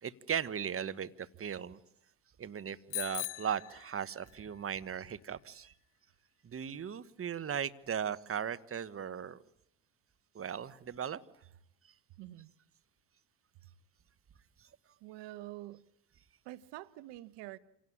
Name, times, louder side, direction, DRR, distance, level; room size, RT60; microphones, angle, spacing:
voice 1, 0.0-1.8 2.4-5.7 6.4-9.4 10.3-11.2 14.6-14.7, right 8 dB, 30° right, 1.3 m, -37 dB
Bicycle bell, 2.9-4.5, left 19 dB, 80° left, 0.9 m, -41 dB
voice 2, 12.2-12.5 15.0-15.8 16.4-17.6, right 16 dB, 70° right, 1.3 m, -46 dB
27.0 x 18.0 x 9.9 m
hypercardioid pair, 75°, 44 cm